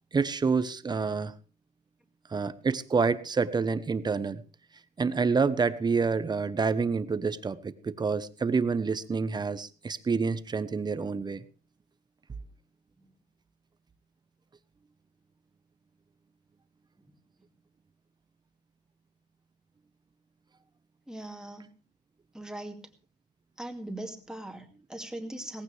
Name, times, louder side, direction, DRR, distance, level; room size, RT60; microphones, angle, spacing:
voice 1, 0.1-1.3 2.3-4.4 5.0-11.4, right 5 dB, 25° right, 13 dB, 1.0 m, -28 dB
voice 2, 21.1-21.7 22.3-22.8 23.6-25.6, right 1 dB, 5° right, 4 dB, 2.3 m, -40 dB
18.0 x 15.5 x 3.4 m, 0.36 s
cardioid pair, 110°, 17 cm